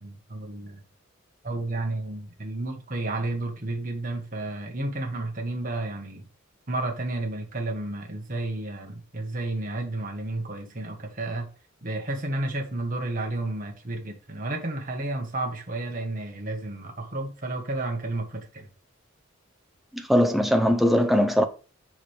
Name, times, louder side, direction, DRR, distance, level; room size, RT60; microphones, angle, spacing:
voice 1, 0.0-0.8 1.4-6.3 6.7-11.5 11.8-18.7, right 2 dB, 40° right, 1.5 m, -31 dB
voice 2, 19.9-21.4, equal, ahead, 0.6 m, -20 dB
7.1 x 5.0 x 3.5 m
head